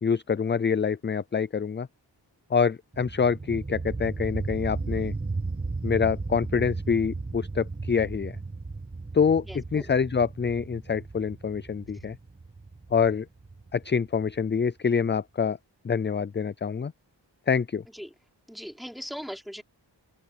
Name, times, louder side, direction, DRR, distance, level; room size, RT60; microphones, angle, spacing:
voice 1, 0.0-1.9 2.5-5.1 5.8-8.4 9.1-9.4 9.7-12.2 12.9-13.3 13.7-15.6 15.8-16.9 17.5-17.8, left 6 dB, 25° left, 0.4 m, -26 dB
sound 1, 2.9-14.5, right 3 dB, 20° right, 1.1 m, -35 dB
voice 2, 9.4-9.9 17.9-18.1 18.5-19.6, equal, ahead, 4.8 m, -39 dB
wide cardioid pair, 70°, 44 cm